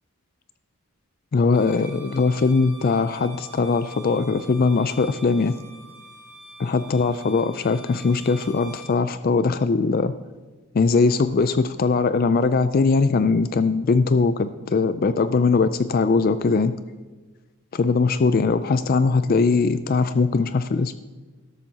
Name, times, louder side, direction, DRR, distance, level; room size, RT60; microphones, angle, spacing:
voice 1, 1.3-5.5 6.6-10.1 10.7-16.7 17.7-20.9, left 4 dB, 40° left, 12 dB, 0.3 m, -20 dB
Bowed string instrument, 1.5-9.0, right 2 dB, 5° right, 3.3 m, -45 dB
13.5 x 12.0 x 2.8 m, 1.3 s
head